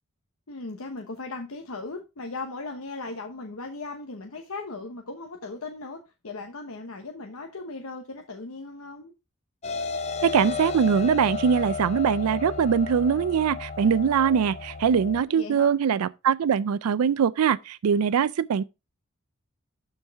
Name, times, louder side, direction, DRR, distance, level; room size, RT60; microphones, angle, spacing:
voice 1, 0.5-9.1 15.3-15.8, left 3 dB, 75° left, 1.0 m, -37 dB
sound 1, 9.6-15.2, left 5 dB, 30° left, 0.5 m, -33 dB
voice 2, 10.2-18.6, right 7 dB, 85° right, 0.4 m, -22 dB
12.0 x 4.6 x 3.4 m
head